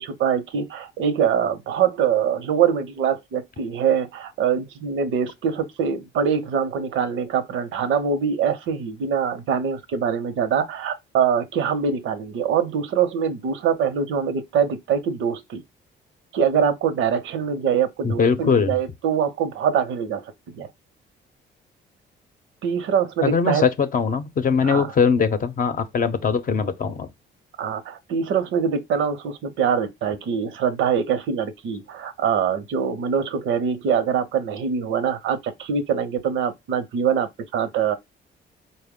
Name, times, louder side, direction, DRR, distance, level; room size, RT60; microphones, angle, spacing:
voice 1, 0.0-15.6 16.3-20.2 20.6-20.7 22.6-23.6 24.6-24.9 27.6-38.0, right 7 dB, 80° right, 0.7 m, -23 dB
voice 2, 18.0-18.8 23.2-27.1, left 5 dB, 45° left, 0.6 m, -21 dB
4.2 x 2.1 x 3.6 m
cardioid pair, 90°, 20 cm